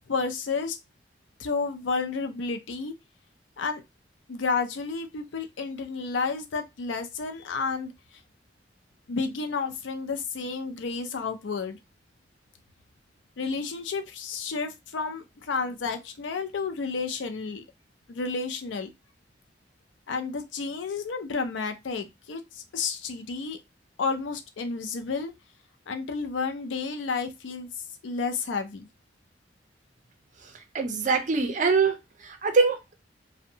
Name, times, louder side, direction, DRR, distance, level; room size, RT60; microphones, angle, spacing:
voice 1, 0.1-0.8 1.4-2.9 3.6-3.8 4.3-7.9 9.1-11.8 13.4-17.6 18.1-18.9 20.1-23.6 24.0-25.3 25.9-27.7 28.0-28.9, left 4 dB, 90° left, 0.5 m, -31 dB
voice 2, 30.7-32.0 32.2-32.9, right 4 dB, 40° right, 0.5 m, -23 dB
2.6 x 2.1 x 2.7 m
head